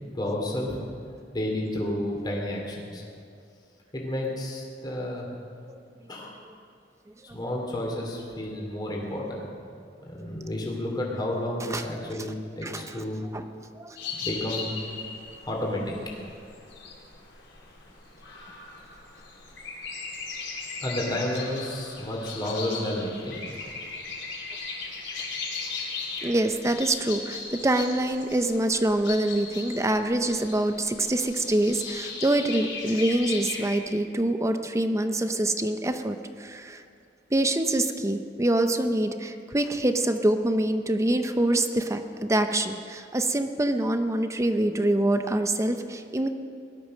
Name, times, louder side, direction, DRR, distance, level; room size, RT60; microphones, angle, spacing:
voice 1, 0.1-0.8 1.3-3.0 3.9-5.3 6.1-6.3 7.2-9.4 10.0-13.2 14.2-14.7 15.4-15.8 20.8-23.4, left 1 dB, 25° left, -2 dB, 2.9 m, -31 dB
voice 2, 12.6-13.0 13.3-13.4 13.8-14.0 26.2-36.8 37.3-46.3, right 1 dB, 15° right, 7 dB, 0.6 m, -25 dB
sound 1, 14.0-33.8, left 4 dB, 80° left, 4.0 m, -38 dB
18.0 x 12.5 x 6.5 m, 2.3 s
head